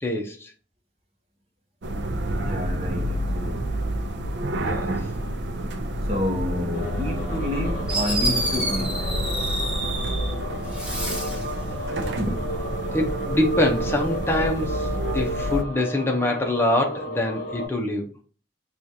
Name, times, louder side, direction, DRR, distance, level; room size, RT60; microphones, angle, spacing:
voice 1, 0.0-0.5 4.6-4.9 11.9-12.2 12.9-14.9 15.1-18.1, left 1 dB, 15° left, 0.6 m, -25 dB
sound 1, 1.8-15.6, right 1 dB, 80° right, 0.5 m, -29 dB
voice 2, 2.4-3.7 6.0-9.1 12.2-12.4, left 1 dB, 35° right, 0.9 m, -29 dB
sound 2, 6.7-17.7, equal, 45° left, 0.7 m, -33 dB
Fireworks, 7.5-7.6 7.9-10.3 10.7-11.5, right 1 dB, 5° right, 0.9 m, -28 dB
4.9 x 2.4 x 2.7 m
head